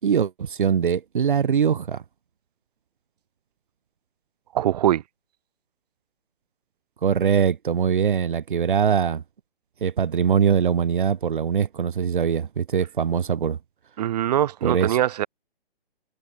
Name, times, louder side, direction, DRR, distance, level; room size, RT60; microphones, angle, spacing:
voice 1, 0.0-2.0 7.0-9.2 9.8-13.6 14.6-15.0, right 7 dB, 60° right, 4.2 m, -22 dB
voice 2, 4.5-5.0 14.0-15.3, right 12 dB, 45° right, 2.8 m, -22 dB
figure-of-eight pair, 130°, 29 cm